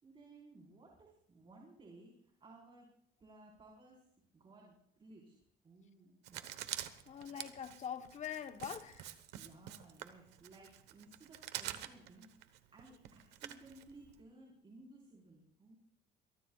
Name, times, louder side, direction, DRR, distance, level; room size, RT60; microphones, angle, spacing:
voice 1, 0.0-2.9 3.2-4.0 4.3-5.4 5.6-6.6 7.1-7.4 9.3-15.7, right 2 dB, 30° right, 4.6 m, -59 dB
Writing, 6.2-14.2, right 12 dB, 90° right, 1.2 m, -47 dB
voice 2, 7.1-9.2, left 8 dB, 45° left, 1.1 m, -44 dB
23.0 x 22.5 x 2.4 m
cardioid pair, 110°, 17 cm